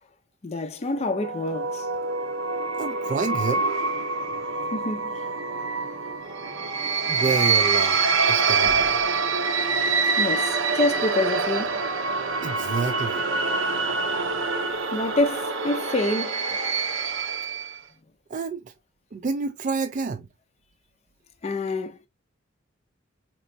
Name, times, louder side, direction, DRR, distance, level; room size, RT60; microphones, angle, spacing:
voice 1, 0.4-1.9 4.7-5.1 10.2-11.8 14.9-16.4 21.4-22.1, left 2 dB, 30° left, 0.4 m, -27 dB
sound 1, 1.0-17.8, right 4 dB, 70° right, 0.7 m, -25 dB
voice 2, 2.7-3.6 7.1-8.0 8.3-9.0 12.4-13.2 18.3-18.7 19.1-20.3, right 4 dB, 40° right, 0.3 m, -28 dB
4.2 x 2.9 x 2.5 m
head